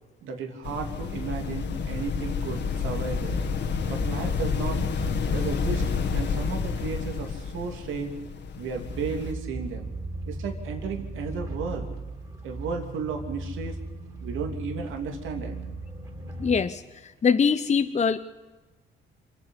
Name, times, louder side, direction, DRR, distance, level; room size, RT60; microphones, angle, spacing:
voice 1, 0.2-3.4 3.8-4.8 5.3-8.1 8.6-9.9 10.3-11.9 12.4-13.8 14.2-15.5, right 5 dB, 85° right, 3 dB, 3.0 m, -34 dB
sound 1, 0.6-9.3, left 5 dB, 65° left, 2.0 m, -29 dB
sound 2, 8.8-16.6, right 2 dB, 15° right, 4.3 m, -37 dB
voice 2, 16.4-16.8 17.2-18.2, left 6 dB, 35° left, 9 dB, 0.9 m, -22 dB
27.5 x 9.4 x 10.0 m, 1.2 s
cardioid pair, 90°, 20 cm